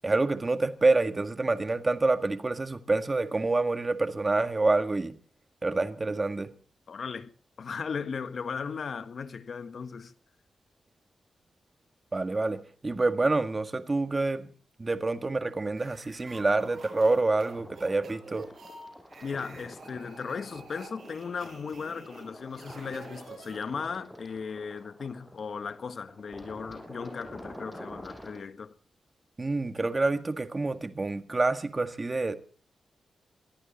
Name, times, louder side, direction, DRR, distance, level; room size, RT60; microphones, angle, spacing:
voice 1, 0.0-5.1 5.6-6.5 12.1-14.5 14.8-18.5 29.4-32.4, right 3 dB, 30° right, 1.8 m, -27 dB
voice 2, 6.9-7.3 7.6-10.1 19.2-28.7, left 5 dB, 60° left, 1.4 m, -37 dB
sound 1, 15.7-24.0, right 3 dB, 60° right, 7.5 m, -49 dB
sound 2, 17.5-28.4, equal, 5° left, 6.1 m, -47 dB
22.5 x 14.0 x 4.2 m
cardioid pair, 95°, 0 cm